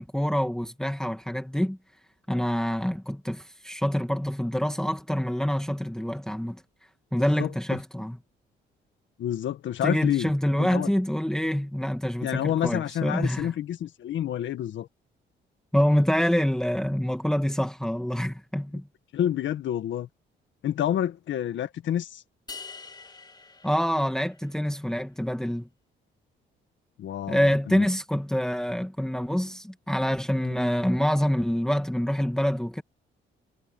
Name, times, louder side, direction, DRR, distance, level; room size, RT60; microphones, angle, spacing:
voice 1, 0.0-1.8 2.3-6.6 7.1-8.2 9.8-13.5 15.7-18.8 23.6-25.7 27.3-32.8, equal, 5° left, 2.1 m, -26 dB
voice 2, 9.2-10.3 10.5-10.9 12.2-14.9 19.1-20.1 20.6-22.2 27.0-27.9 30.5-30.6, left 11 dB, 70° left, 1.7 m, -28 dB
sound 1, 22.5-24.8, left 5 dB, 20° left, 3.0 m, -45 dB
cardioid pair, 90°, 20 cm